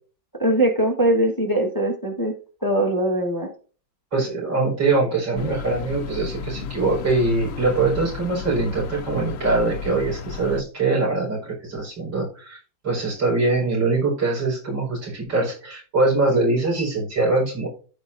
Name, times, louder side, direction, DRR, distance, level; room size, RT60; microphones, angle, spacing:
voice 1, 0.3-2.3 2.6-3.5, right 1 dB, 10° left, 2 dB, 1.4 m, -21 dB
voice 2, 4.1-12.6 12.8-17.7, right 3 dB, 85° right, -2 dB, 5.8 m, -23 dB
sound 1, 5.4-10.6, left 6 dB, 70° left, 0.8 m, -34 dB
14.5 x 5.0 x 2.7 m, 0.37 s
omnidirectional pair, 2.0 m